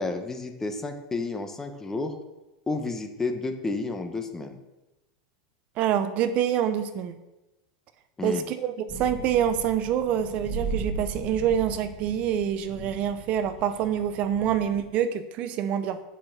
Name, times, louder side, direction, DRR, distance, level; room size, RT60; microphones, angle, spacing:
voice 1, 0.0-2.1 2.7-4.6 8.2-8.4, left 3 dB, 15° left, 6 dB, 1.1 m, -31 dB
voice 2, 5.8-7.2 8.2-16.0, right 9 dB, 45° right, 10 dB, 0.6 m, -26 dB
sound 1, 8.9-14.9, right 3 dB, 10° right, 2.2 m, -37 dB
8.6 x 5.7 x 6.7 m, 1.0 s
supercardioid pair, 125°, 3 cm